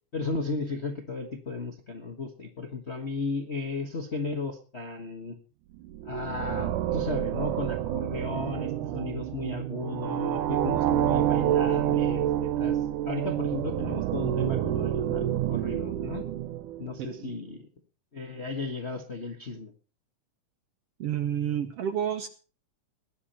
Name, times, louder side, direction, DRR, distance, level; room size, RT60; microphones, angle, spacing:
voice 1, 0.1-5.4 6.0-12.8 13.0-16.2 16.8-17.6 18.1-19.7, left 3 dB, 40° left, 3 dB, 0.9 m, -35 dB
sound 1, 5.8-17.0, right 12 dB, 90° right, 2.5 m, -28 dB
voice 2, 17.0-17.3 21.0-22.3, right 9 dB, 65° right, 9 dB, 1.6 m, -30 dB
18.5 x 11.0 x 4.3 m, 0.38 s
omnidirectional pair, 3.6 m